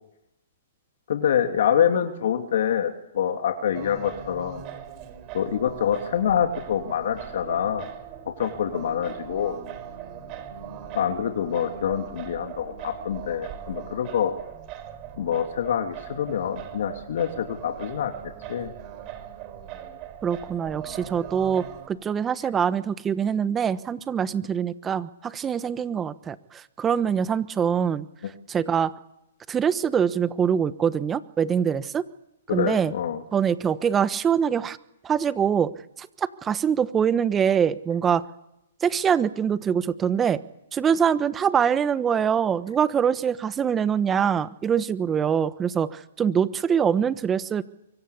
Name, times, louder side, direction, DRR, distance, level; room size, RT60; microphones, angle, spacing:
voice 1, 1.1-4.6 5.3-7.9 8.3-9.6 10.9-14.3 15.2-18.1 18.5-18.7 32.5-33.2, left 9 dB, 65° left, 4 dB, 2.9 m, -26 dB
Singing, 3.7-21.9, right 10 dB, 35° right, 4.2 m, -40 dB
sound 1, 7.2-14.4, right 3 dB, 80° right, 7.5 m, -48 dB
voice 2, 20.2-28.0 28.5-28.9 29.5-32.0 32.5-32.9 33.3-34.8 35.0-38.2 38.8-40.4 40.7-47.6, right 7 dB, 15° right, 14 dB, 1.2 m, -24 dB
25.0 x 23.5 x 8.5 m, 0.86 s
hypercardioid pair, 135°, 0 cm